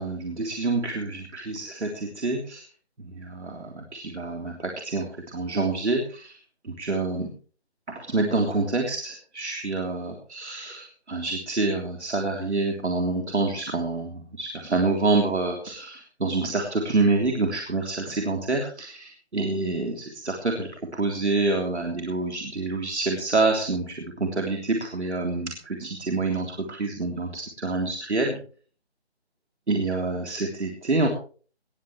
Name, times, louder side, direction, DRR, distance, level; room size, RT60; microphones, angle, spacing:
voice 1, 0.0-2.7 3.0-6.4 6.6-7.3 8.0-28.4 29.7-31.1, right 3 dB, 85° right, 1 dB, 3.5 m, -27 dB
20.0 x 14.0 x 3.3 m, 0.40 s
figure-of-eight pair, 175°, 33 cm